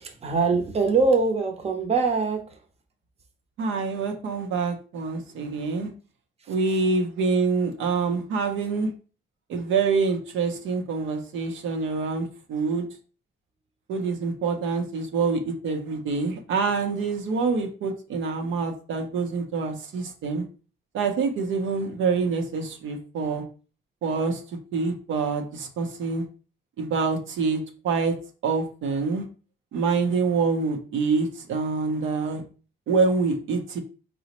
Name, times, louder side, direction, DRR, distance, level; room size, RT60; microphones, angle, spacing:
voice 1, 0.0-2.5, right 4 dB, 30° right, 4 dB, 0.7 m, -23 dB
voice 2, 3.6-5.9 6.5-8.9 9.5-12.9 13.9-20.4 20.9-23.4 24.0-24.4 24.7-26.2 26.8-28.1 28.4-29.2 29.7-32.4 32.9-33.8, right 4 dB, 75° right, 4 dB, 0.7 m, -26 dB
3.9 x 2.0 x 2.9 m, 0.37 s
cardioid pair, 90°, 20 cm